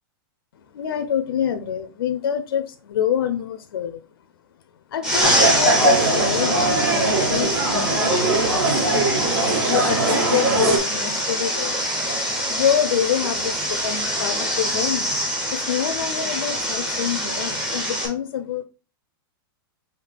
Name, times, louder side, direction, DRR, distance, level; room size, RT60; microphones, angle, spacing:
voice 1, 0.7-4.0 4.9-9.0 9.6-11.8 12.0-15.1 15.5-18.6, left 8 dB, 75° left, 0.6 m, -26 dB
sound 1, 5.0-18.1, equal, 5° right, 0.8 m, -25 dB
sound 2, 5.2-10.8, right 2 dB, 70° right, 2.0 m, -21 dB
5.6 x 2.7 x 3.4 m
supercardioid pair, 180°, 12 cm